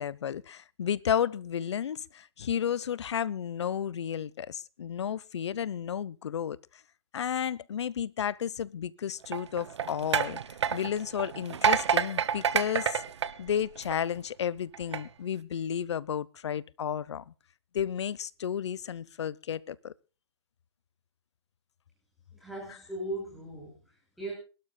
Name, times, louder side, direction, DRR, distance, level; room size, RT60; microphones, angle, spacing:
voice 1, 0.0-6.6 7.1-10.4 10.7-13.0 13.4-17.3 17.7-19.9, left 8 dB, 75° left, 0.8 m, -32 dB
sound 1, 9.2-14.2 14.7-15.0, right 7 dB, 80° right, 1.1 m, -29 dB
voice 2, 22.3-24.3, right 1 dB, ahead, 6.0 m, -38 dB
27.0 x 12.5 x 2.2 m
hypercardioid pair, 150°, 14 cm